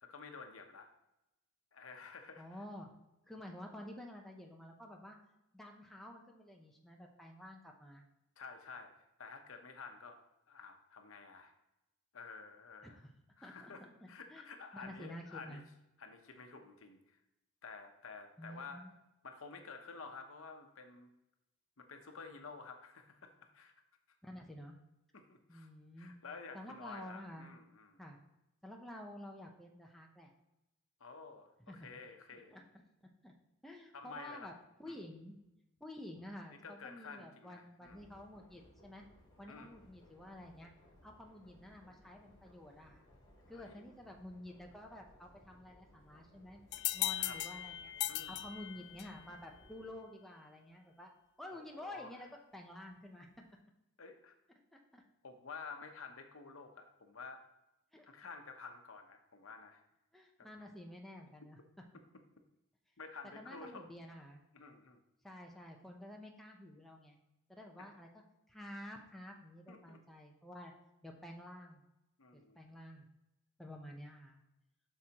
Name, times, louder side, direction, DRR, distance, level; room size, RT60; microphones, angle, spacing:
voice 1, 0.0-0.9 1.7-2.5 8.4-8.9 9.2-10.2 10.5-11.5 12.1-13.0 13.4-15.6 16.0-17.2 17.6-18.8 19.2-21.1 21.8-23.7 25.1-25.7 26.0-28.0 31.0-32.6 33.9-34.5 34.9-35.0 36.6-38.0 39.5-39.8 43.5-43.8 47.2-47.4 48.1-48.4 51.5-52.3 54.0-54.3 55.2-57.4 58.0-59.8 60.6-60.7 63.0-63.9 64.5-65.0 69.7-70.0 72.2-72.6, left 4 dB, 75° left, 5 dB, 0.9 m, -51 dB
voice 2, 2.4-2.9 3.3-5.2 5.5-8.0 12.8-13.1 13.4-14.5 14.7-15.6 18.4-18.9 24.2-24.8 25.5-26.1 26.5-27.5 28.0-28.2 28.6-30.3 31.7-31.9 32.5-32.6 33.2-33.3 33.6-34.5 34.8-35.4 35.8-39.0 39.4-40.7 41.0-43.0 43.5-46.6 46.9-47.9 48.3-51.1 51.4-53.3 54.7-55.0 57.9-58.0 60.1-61.6 63.4-64.4 65.2-67.2 67.5-70.7 71.0-71.8 72.3-73.1 73.6-74.4, left 1 dB, ahead, 0 dB, 0.7 m, -50 dB
sound 1, 37.8-49.9, equal, 20° left, 2.8 m, -64 dB
sound 2, 46.7-49.3, left 14 dB, 55° left, 0.3 m, -38 dB
8.0 x 6.3 x 2.9 m, 0.90 s
head